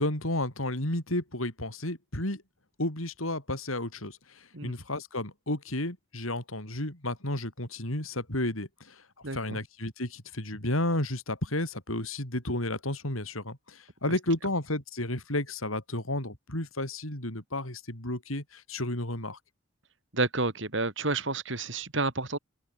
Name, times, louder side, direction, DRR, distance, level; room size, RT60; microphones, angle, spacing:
voice 1, 0.0-2.4 2.8-9.0 9.3-19.4, left 1 dB, 90° left, 7.7 m, -32 dB
voice 2, 9.2-9.6 20.1-22.4, right 3 dB, 65° right, 3.5 m, -30 dB
head